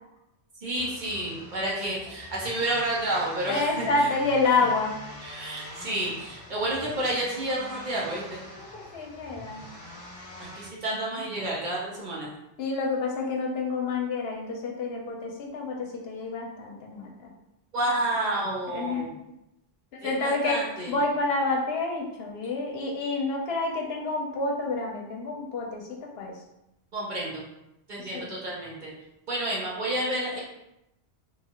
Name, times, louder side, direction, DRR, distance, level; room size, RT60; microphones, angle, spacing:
voice 1, 0.6-3.9 5.2-8.4 10.4-12.3 17.7-19.1 20.0-20.9 26.9-27.4 27.9-28.9 29.3-30.4, right 1 dB, 50° right, -5 dB, 0.8 m, -30 dB
sound 1, 0.7-10.7, left 1 dB, 40° left, 0.5 m, -44 dB
voice 2, 3.5-4.9 8.7-9.6 12.6-17.3 18.7-19.2 19.9-20.6 20.9-26.4 28.0-28.3, left 3 dB, 70° left, 0 dB, 0.8 m, -28 dB
2.8 x 2.4 x 2.8 m, 0.86 s
omnidirectional pair, 1.1 m